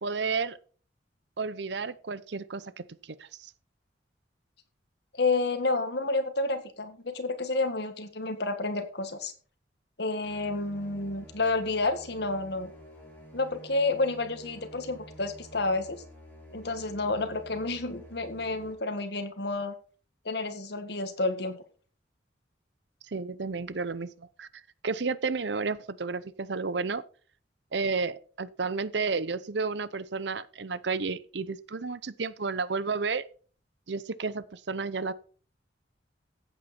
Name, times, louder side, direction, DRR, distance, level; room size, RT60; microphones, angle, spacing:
voice 1, 0.0-0.6 1.4-2.8 3.2-3.5 23.1-24.5 24.8-27.0 27.7-33.2 33.9-35.1, right 4 dB, 65° right, 0.7 m, -32 dB
voice 2, 5.1-9.3 10.0-12.7 13.3-16.0 16.5-19.7 20.3-21.6, left 3 dB, 60° left, 1.7 m, -30 dB
sound 1, 10.2-18.7, equal, 10° left, 5.6 m, -50 dB
15.0 x 8.2 x 4.3 m
head